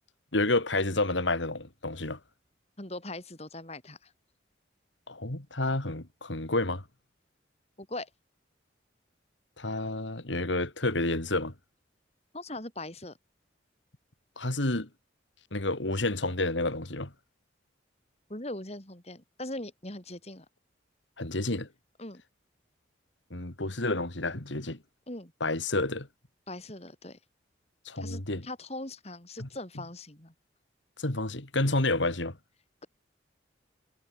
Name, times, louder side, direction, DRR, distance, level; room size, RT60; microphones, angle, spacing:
voice 1, 0.3-2.2 5.1-6.8 9.6-11.5 14.4-14.9 15.5-17.1 21.2-21.7 23.3-24.8 25.4-26.1 27.8-28.4 29.4-29.5 31.0-32.4, left 2 dB, 75° left, 2.9 m, -29 dB
voice 2, 2.8-4.1 7.8-8.1 12.3-13.2 18.3-20.5 22.0-22.2 25.1-25.3 26.5-27.2 28.0-30.3, left 1 dB, 35° left, 3.9 m, -40 dB
head